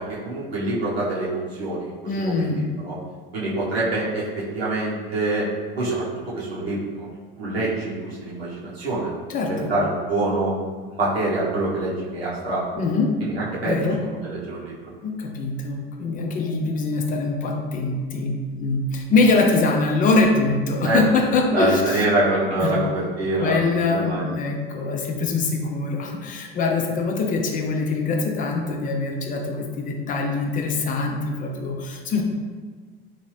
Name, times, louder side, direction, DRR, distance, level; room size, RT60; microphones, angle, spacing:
voice 1, 0.0-2.9 3.3-5.5 5.8-6.0 6.3-7.0 7.4-9.1 9.7-10.5 10.9-12.8 13.2-14.7 20.8-21.0 21.5-23.6 23.9-24.2, right 2 dB, 85° right, -8 dB, 1.1 m, -25 dB
voice 2, 2.0-2.7 9.3-9.7 12.7-13.1 13.6-14.0 15.0-22.0 22.5-22.9 23.3-32.2, left 3 dB, 30° left, 2 dB, 0.4 m, -23 dB
3.2 x 2.6 x 3.2 m, 1.5 s
figure-of-eight pair, 75°, 30 cm